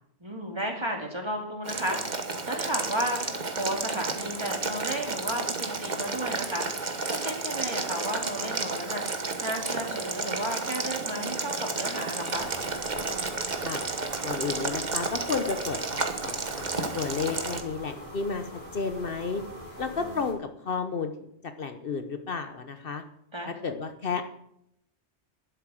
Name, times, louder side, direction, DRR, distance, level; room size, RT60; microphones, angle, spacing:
voice 1, 0.2-12.5 20.0-20.2 23.3-23.6, equal, 25° right, 1 dB, 2.5 m, -33 dB
Boiling, 1.6-17.6, right 3 dB, 45° right, 1.3 m, -32 dB
sound 1, 12.3-20.3, equal, 40° left, 3.2 m, -43 dB
voice 2, 14.2-19.4 19.8-21.3 21.6-23.0 23.5-24.2, left 5 dB, 60° left, 8 dB, 1.1 m, -32 dB
11.5 x 8.1 x 7.6 m, 0.75 s
omnidirectional pair, 1.1 m